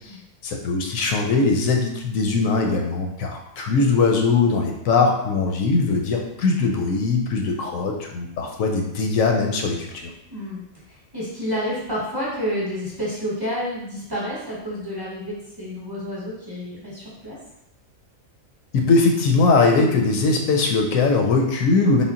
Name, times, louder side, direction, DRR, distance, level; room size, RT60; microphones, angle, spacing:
voice 1, 0.4-10.1 18.7-22.0, left 3 dB, 85° left, 2 dB, 1.0 m, -20 dB
voice 2, 10.9-17.4, equal, 20° right, -7 dB, 0.9 m, -29 dB
3.7 x 2.1 x 3.7 m, 0.81 s
omnidirectional pair, 1.4 m